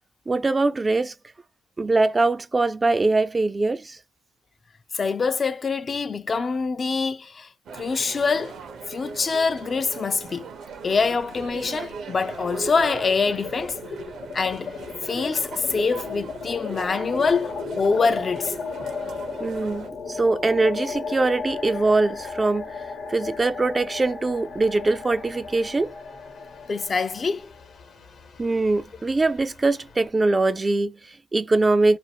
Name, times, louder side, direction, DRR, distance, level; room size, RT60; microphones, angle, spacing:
voice 1, 0.3-1.1 1.8-4.0 19.4-22.7 23.1-25.9 28.4-32.0, right 3 dB, 25° right, 0.4 m, -22 dB
voice 2, 4.9-8.6 8.9-10.5 10.8-13.8 14.3-14.8 15.0-18.6 26.7-27.5, left 4 dB, 40° left, 0.4 m, -25 dB
sound 1, 7.7-19.9, right 5 dB, 70° right, 0.7 m, -40 dB
sound 2, 11.0-11.8 12.1-30.1, left 4 dB, 60° left, 1.0 m, -35 dB
2.6 x 2.5 x 2.8 m
cardioid pair, 95°, 0 cm